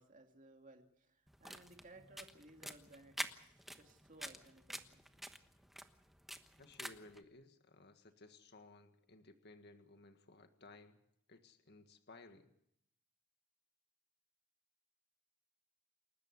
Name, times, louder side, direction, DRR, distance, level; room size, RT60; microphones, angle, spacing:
voice 1, 0.0-5.2, right 2 dB, 40° right, 4 dB, 2.7 m, -60 dB
sound 1, 1.3-7.2, equal, ahead, 1.2 m, -48 dB
voice 2, 6.6-11.0 11.3-12.5, left 2 dB, 50° left, 7 dB, 1.7 m, -59 dB
29.0 x 13.5 x 8.2 m, 0.74 s
head